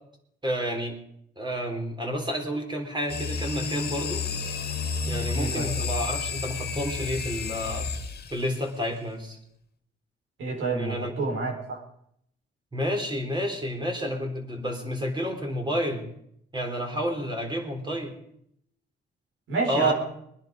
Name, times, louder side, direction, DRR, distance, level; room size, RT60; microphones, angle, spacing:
voice 1, 0.4-1.0 1.4-4.2 5.1-7.9 8.3-9.4 10.7-11.1 12.7-16.0 16.5-18.1 19.7-19.9, equal, 25° right, 2 dB, 3.9 m, -30 dB
sound 1, 3.1-8.6, left 5 dB, 55° left, 1.9 m, -31 dB
voice 2, 5.3-5.7 10.4-11.8 19.5-19.9, right 4 dB, 75° right, -1 dB, 5.0 m, -28 dB
21.5 x 10.0 x 5.3 m, 0.72 s
cardioid pair, 90°, 20 cm